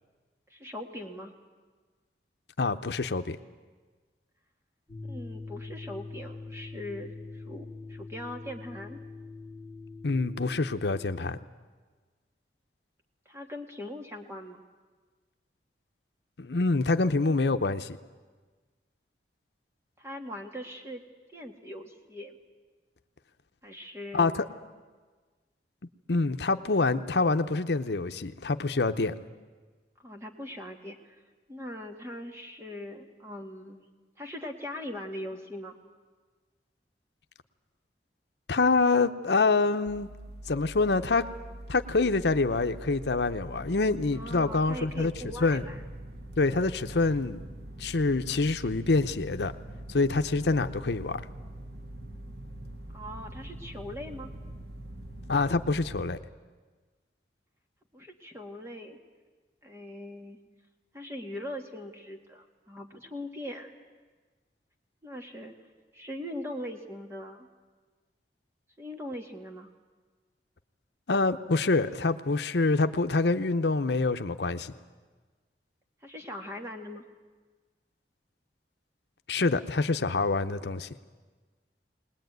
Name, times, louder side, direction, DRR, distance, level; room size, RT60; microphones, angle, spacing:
voice 1, 0.5-1.3 5.0-9.0 13.3-14.6 20.0-21.0 21.3-22.4 23.6-24.5 30.0-31.2 31.5-33.9 34.2-35.8 44.1-45.8 52.9-54.3 57.9-59.0 59.6-60.4 60.9-63.7 65.0-65.5 65.9-67.5 68.8-69.7 76.0-77.0, left 1 dB, 15° right, 3 dB, 1.8 m, -41 dB
voice 2, 2.6-3.4 10.0-11.4 16.4-18.0 24.1-24.4 26.1-29.1 38.5-40.1 40.5-41.2 41.7-45.1 45.4-45.6 46.4-47.4 47.8-49.5 49.9-51.2 55.3-56.2 71.1-74.7 79.3-80.9, left 3 dB, 75° left, 9 dB, 0.8 m, -26 dB
sound 1, 4.9-11.1, left 3 dB, 10° left, 2.5 m, -43 dB
sound 2, 39.9-56.0, right 1 dB, 70° right, 1.5 m, -43 dB
20.5 x 20.0 x 9.3 m, 1.4 s
head